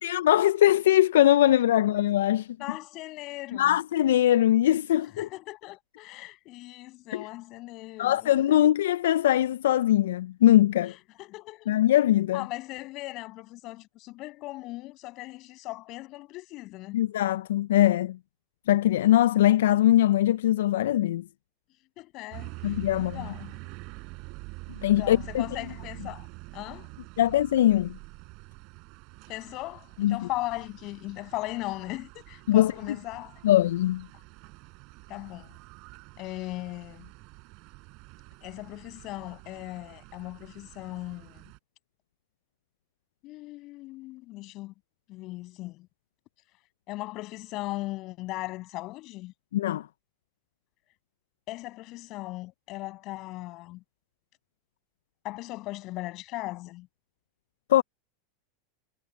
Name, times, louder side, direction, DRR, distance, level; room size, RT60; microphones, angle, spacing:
voice 1, 0.0-2.5 3.6-5.2 7.1-7.3 8.0-10.9 11.7-12.5 16.9-18.2 18.7-21.2 22.6-23.2 24.8-25.4 27.2-28.0 30.0-30.3 32.5-32.7 33.4-34.1 49.5-49.9 57.7-57.8, left 13 dB, 85° left, 0.3 m, -21 dB
voice 2, 2.6-3.8 5.2-8.6 10.8-11.8 12.3-17.1 22.0-22.5 22.9-23.6 24.8-26.3 26.5-26.9 29.3-33.4 35.1-35.6 36.2-37.1 38.4-41.4 43.2-44.7 45.1-45.9 46.9-49.3 51.5-53.8 55.2-56.9, left 19 dB, 50° left, 7.0 m, -38 dB
sound 1, 22.3-41.6, right 27 dB, 55° right, 5.9 m, -46 dB
supercardioid pair, 120°, 0 cm